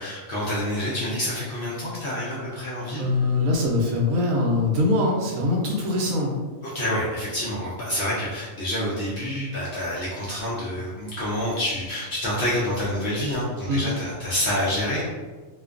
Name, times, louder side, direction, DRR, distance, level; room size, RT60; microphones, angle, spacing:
voice 1, 0.0-3.1 6.6-15.1, left 1 dB, 60° left, -7 dB, 0.6 m, -27 dB
voice 2, 3.0-6.4 13.7-13.8, left 2 dB, 80° right, -1 dB, 1.0 m, -22 dB
2.5 x 2.2 x 2.4 m, 1.4 s
omnidirectional pair, 1.4 m